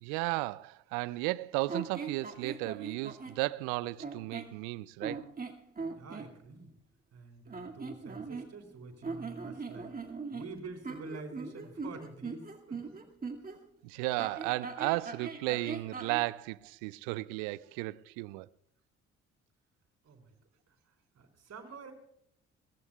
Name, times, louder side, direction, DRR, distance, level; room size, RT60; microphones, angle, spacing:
voice 1, 0.0-5.2 13.8-18.5, right 20 dB, 70° right, 0.6 m, -34 dB
sound 1, 1.7-3.4 4.0-4.6 5.0-6.3 7.5-8.7 9.0-13.6 14.2-16.3, right 4 dB, 25° right, 2.1 m, -40 dB
voice 2, 6.0-6.7 7.1-9.9 10.3-13.0 20.0-20.3 21.1-21.9, right 3 dB, 50° right, 4.2 m, -47 dB
22.5 x 17.5 x 2.3 m
hypercardioid pair, 45°, 34 cm